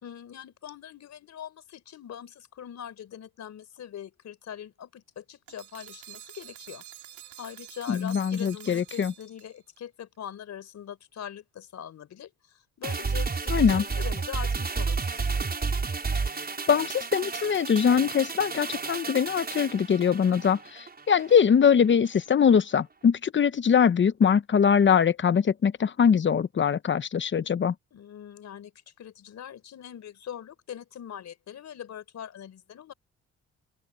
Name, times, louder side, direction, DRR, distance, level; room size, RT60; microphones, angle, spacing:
voice 1, 0.0-6.8 7.4-15.0 27.9-32.9, left 9 dB, 65° left, 4.2 m, -42 dB
sound 1, 5.5-9.8, right 13 dB, 80° right, 3.0 m, -47 dB
voice 2, 7.9-9.1 13.5-13.8 16.7-27.7, left 7 dB, 40° left, 0.9 m, -22 dB
sound 2, 12.8-21.4 21.7-21.8, right 4 dB, 30° right, 6.1 m, -31 dB
open air
cardioid pair, 90°, 30 cm